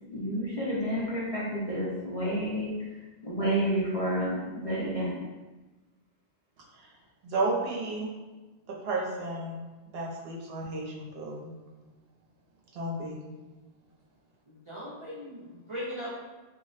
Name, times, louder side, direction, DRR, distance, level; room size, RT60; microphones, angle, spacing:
voice 1, 0.1-2.7 3.2-5.2, right 1 dB, 45° left, -8 dB, 0.5 m, -30 dB
voice 2, 7.2-8.1 8.7-11.5 12.7-13.3, right 2 dB, 65° right, -3 dB, 0.8 m, -33 dB
voice 3, 14.5-16.2, equal, 45° right, -8 dB, 0.4 m, -39 dB
2.5 x 2.1 x 3.9 m, 1.2 s
omnidirectional pair, 1.2 m